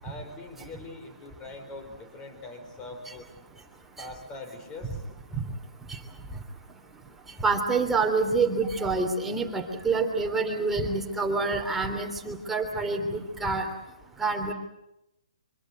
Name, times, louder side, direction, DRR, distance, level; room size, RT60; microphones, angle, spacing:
voice 1, 0.0-3.3 4.0-5.0, left 2 dB, 20° left, 7 dB, 4.7 m, -42 dB
voice 2, 7.4-13.6 14.2-14.5, right 3 dB, 5° right, 2 dB, 3.2 m, -27 dB
25.0 x 24.0 x 7.9 m, 0.87 s
hypercardioid pair, 145°, 4 cm